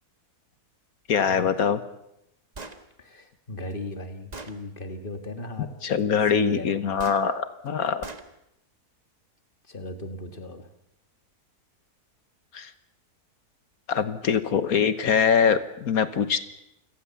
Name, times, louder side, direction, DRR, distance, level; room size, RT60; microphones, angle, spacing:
voice 1, 1.1-1.8 5.8-8.1 12.5-12.7 13.9-16.4, left 6 dB, 65° left, 13 dB, 1.5 m, -23 dB
Gunshot gunfire, 2.5-2.8 3.7-3.8 4.3-4.6 7.0-7.2 8.0-8.3, right 3 dB, 25° right, 1.5 m, -39 dB
voice 2, 3.0-5.7 6.3-7.0 9.7-10.7, left 2 dB, 35° left, 8 dB, 2.0 m, -36 dB
28.5 x 17.0 x 7.1 m, 0.83 s
omnidirectional pair, 1.7 m